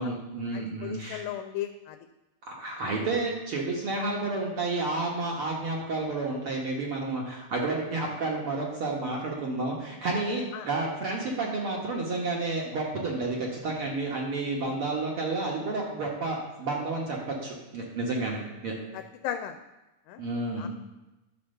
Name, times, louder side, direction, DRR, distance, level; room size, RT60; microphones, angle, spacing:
voice 1, 0.0-1.2 2.4-18.7 20.2-20.7, right 3 dB, 55° right, -2 dB, 1.7 m, -31 dB
voice 2, 0.5-2.0 10.5-10.7 14.6-14.8 18.9-19.6 20.1-20.2 20.6-20.7, left 11 dB, 90° left, 8 dB, 2.3 m, -36 dB
11.5 x 4.3 x 6.6 m, 1.0 s
omnidirectional pair, 3.9 m